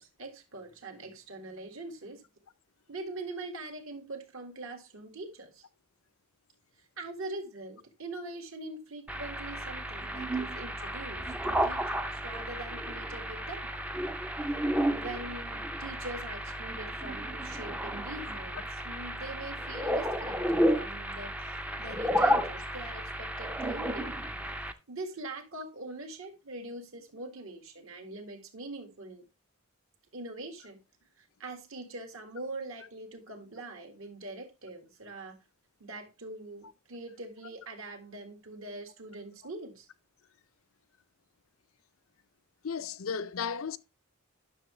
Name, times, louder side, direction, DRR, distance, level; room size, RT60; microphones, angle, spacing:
voice 1, 0.0-2.2 2.9-5.6 7.0-13.7 14.9-21.4 21.8-24.2 24.9-29.3 30.1-30.8 31.2-35.4 35.8-39.9, right 2 dB, 65° right, 1.8 m, -43 dB
sound 1, 9.1-24.7, equal, 5° right, 0.5 m, -32 dB
voice 2, 42.6-43.8, left 6 dB, 65° left, 0.5 m, -34 dB
10.5 x 6.4 x 3.1 m
head